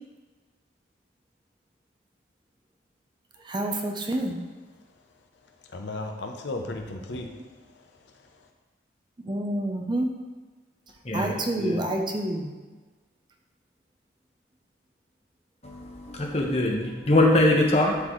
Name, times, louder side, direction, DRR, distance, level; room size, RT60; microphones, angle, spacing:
voice 1, 3.4-4.4 9.2-10.1 11.1-12.5, right 1 dB, 25° right, 2 dB, 0.5 m, -28 dB
voice 2, 5.7-7.4 7.7-8.5, left 2 dB, 70° left, 3 dB, 0.7 m, -36 dB
voice 3, 15.6-18.0, left 1 dB, 35° left, 0 dB, 1.0 m, -22 dB
11.5 x 4.0 x 3.1 m, 1.3 s
head